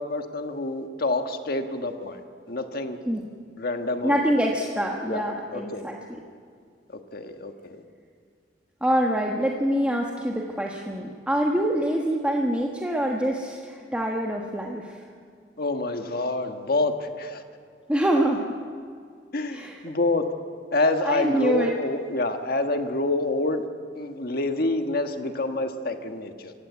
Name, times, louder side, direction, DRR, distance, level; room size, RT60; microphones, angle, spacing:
voice 1, 0.0-3.0 3.6-4.2 5.1-5.9 7.1-7.8 15.6-17.4 19.3-20.3 20.7-23.7 23.9-26.5, left 2 dB, 55° left, 6 dB, 1.4 m, -27 dB
voice 2, 4.0-6.2 8.8-15.0 17.9-18.4 19.5-19.8 21.0-21.7, right 1 dB, 5° right, -1 dB, 1.3 m, -25 dB
27.5 x 16.0 x 8.2 m, 2.2 s
head